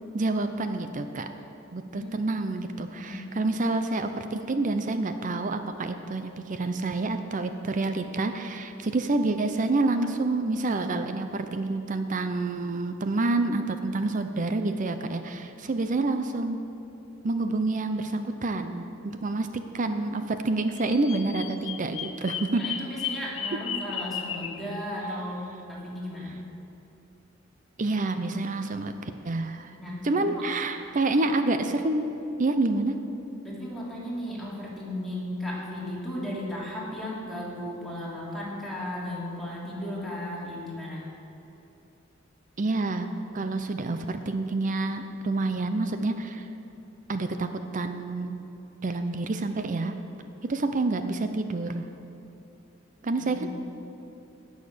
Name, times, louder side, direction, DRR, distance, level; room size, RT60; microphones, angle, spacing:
voice 1, 0.1-1.3 1.7-16.6 17.2-19.5 19.7-22.6 27.8-29.7 30.0-32.0 32.4-32.9 42.6-43.1 43.3-46.5 47.1-47.5 47.7-48.4 48.8-49.9 50.4-51.9 53.0-53.5, right 2 dB, 40° right, 8 dB, 0.6 m, -28 dB
voice 2, 1.9-2.5 3.0-3.4 22.6-26.4 29.8-30.4 33.4-41.0 53.2-53.5, left 1 dB, ahead, -7 dB, 3.1 m, -35 dB
Bird vocalization bird call bird song, 20.7-24.6, left 9 dB, 80° left, 0.8 m, -34 dB
17.0 x 6.5 x 6.6 m, 2.9 s
head